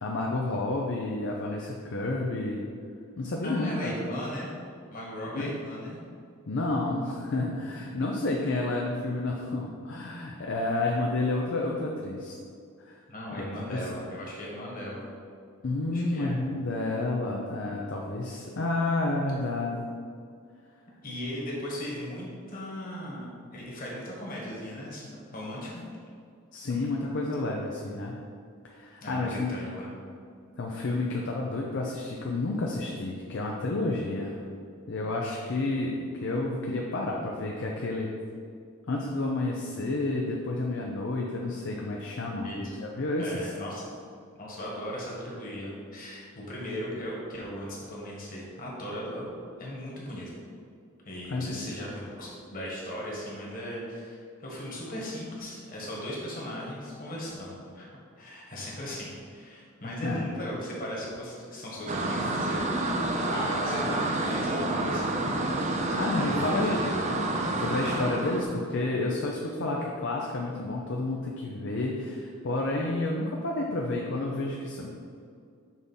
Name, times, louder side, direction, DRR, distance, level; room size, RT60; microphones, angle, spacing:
voice 1, 0.0-2.6 3.2-3.9 5.3-5.5 6.5-12.4 12.8-13.0 13.4-13.8 15.6-19.9 26.5-28.1 28.6-29.5 30.6-34.4 34.9-38.1 38.9-42.5 42.8-43.5 51.3-51.6 60.0-60.2 66.0-66.8 67.6-74.9, left 2 dB, 55° left, -1 dB, 0.6 m, -30 dB
voice 2, 3.4-4.5 4.9-6.0 13.1-15.0 15.9-16.3 21.0-23.3 23.5-25.8 29.0-29.9 42.4-42.7 43.2-43.9 44.3-49.3 49.6-50.3 51.0-57.9 58.2-62.6 63.3-67.1, equal, 40° left, -4 dB, 1.6 m, -37 dB
sound 1, 61.9-68.4, right 2 dB, 30° right, 0.5 m, -29 dB
6.2 x 3.6 x 5.5 m, 2.2 s
head